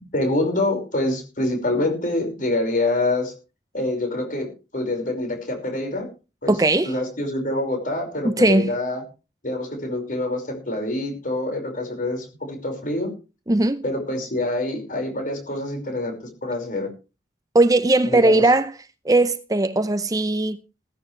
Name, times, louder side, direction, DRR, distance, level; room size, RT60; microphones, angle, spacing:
voice 1, 0.1-3.3 3.7-6.1 6.4-6.6 6.8-9.0 9.4-13.1 13.8-16.9 18.0-18.4, left 2 dB, 45° left, 5.4 m, -26 dB
voice 2, 6.5-6.9 8.2-8.7 13.5-13.8 17.5-18.7 19.1-20.6, right 2 dB, 20° right, 0.6 m, -18 dB
16.0 x 14.5 x 3.3 m
head